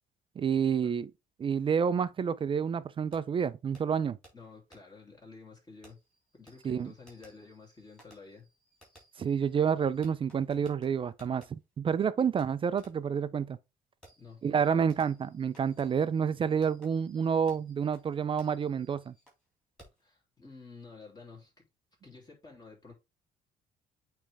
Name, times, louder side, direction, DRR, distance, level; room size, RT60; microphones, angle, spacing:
voice 1, 0.4-1.1 1.4-4.2 6.6-6.9 9.2-11.4 11.8-13.6 14.4-19.1, right 7 dB, 30° right, 0.4 m, -29 dB
Fireworks, 3.1-3.2 3.7-3.8 4.2-4.3 4.7-4.8 5.8-11.5 12.4-12.5 12.8-13.1 14.0-19.4 19.8-20.1, right 1 dB, 5° left, 3.4 m, -60 dB
voice 2, 4.3-6.0 6.3-8.5 14.2-14.9 20.0-21.6 22.0-22.9, left 4 dB, 25° left, 2.8 m, -51 dB
8.5 x 3.4 x 3.4 m
cardioid pair, 110°, 17 cm